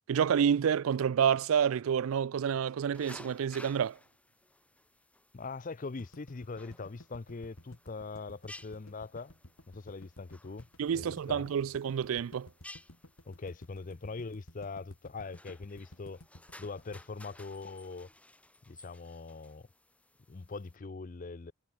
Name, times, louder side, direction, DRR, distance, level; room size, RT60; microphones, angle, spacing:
voice 1, 0.1-4.0 10.8-12.5, right 8 dB, 75° right, 0.4 m, -28 dB
sound 1, 2.9-20.8, left 1 dB, 5° left, 6.0 m, -56 dB
voice 2, 5.3-9.3 9.7-10.7 10.9-11.5 13.3-16.2 16.6-18.1 18.7-19.7 20.3-21.5, left 3 dB, 40° left, 0.5 m, -42 dB
sound 2, 6.0-18.2, left 1 dB, 70° left, 3.8 m, -54 dB
head